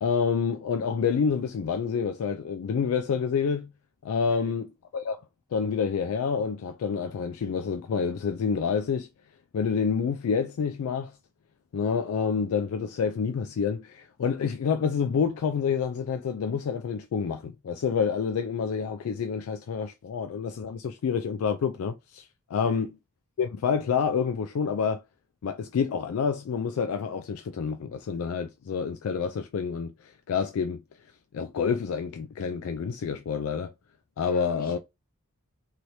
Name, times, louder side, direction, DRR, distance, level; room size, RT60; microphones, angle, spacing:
voice 1, 0.0-3.7 4.0-4.7 4.9-5.2 5.5-9.1 9.5-11.1 11.7-22.9 23.4-25.0 25.4-30.8 31.3-33.7 34.2-34.8, left 6 dB, 70° left, 0.3 m, -28 dB
voice 2, 34.2-34.8, left 2 dB, 40° left, 1.3 m, -45 dB
3.1 x 2.9 x 2.6 m
head